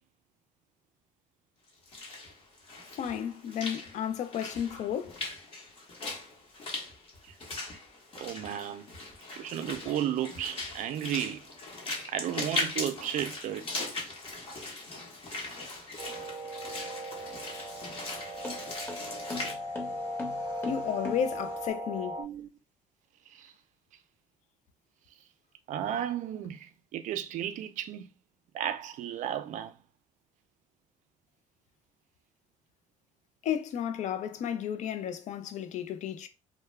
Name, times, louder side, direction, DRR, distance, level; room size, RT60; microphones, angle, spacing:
Walk footsteps / Splash splatter, 1.7-19.5, left 2 dB, 40° left, 0.9 m, -39 dB
voice 1, 3.0-5.2 20.6-22.2 33.4-36.3, left 9 dB, 55° left, 0.4 m, -33 dB
voice 2, 8.2-8.9 9.3-11.5 12.1-13.6 22.2-22.5 23.3-23.5 25.7-28.1 28.5-29.8, right 10 dB, 60° right, 0.4 m, -34 dB
sound 1, 16.0-22.2, equal, 30° right, 0.7 m, -38 dB
sound 2, 17.1-21.7, left 2 dB, 15° left, 0.8 m, -42 dB
2.2 x 2.1 x 3.1 m
cardioid pair, 115°, 15 cm